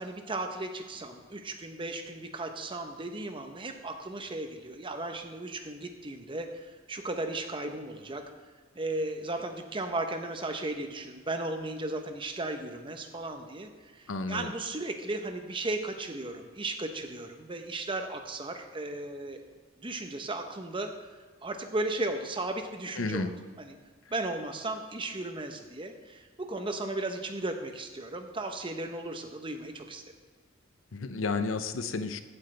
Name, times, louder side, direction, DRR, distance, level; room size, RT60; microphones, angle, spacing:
voice 1, 0.0-8.2 8.7-19.4 19.8-20.9 21.4-23.3 23.6-23.7 24.1-30.0, right 2 dB, 25° right, 6 dB, 0.9 m, -35 dB
voice 2, 14.1-14.5 23.0-23.3 30.9-32.2, left 3 dB, 90° left, 11 dB, 0.7 m, -31 dB
15.0 x 7.8 x 3.3 m, 1.5 s
head